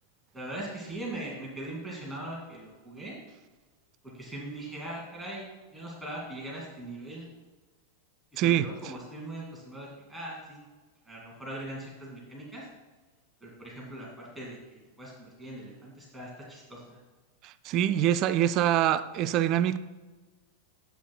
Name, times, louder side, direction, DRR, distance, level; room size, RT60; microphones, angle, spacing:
voice 1, 0.3-3.2 4.1-5.5 5.7-7.3 8.3-10.6 11.1-12.7 13.4-17.0, right 1 dB, 5° right, 2.2 m, -40 dB
voice 2, 8.4-8.7 17.4-19.8, right 11 dB, 40° right, 0.3 m, -25 dB
10.0 x 7.8 x 2.2 m
figure-of-eight pair, 90°, 0 cm